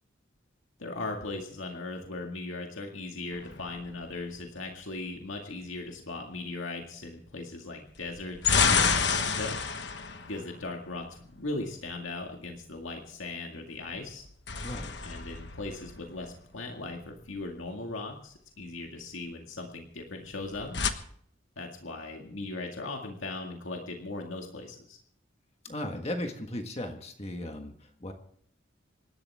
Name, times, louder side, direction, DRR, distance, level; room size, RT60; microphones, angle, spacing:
voice 1, 0.8-9.6 10.3-14.3 15.0-20.8 21.6-25.0, left 2 dB, 85° left, 1 dB, 2.1 m, -38 dB
sound 1, 3.3-4.4 8.0-11.3 14.1-16.6 20.3-20.9, left 6 dB, 60° left, 1.3 m, -29 dB
voice 2, 25.6-28.1, left 1 dB, 30° left, 4 dB, 1.5 m, -36 dB
26.5 x 12.0 x 3.6 m, 0.63 s
head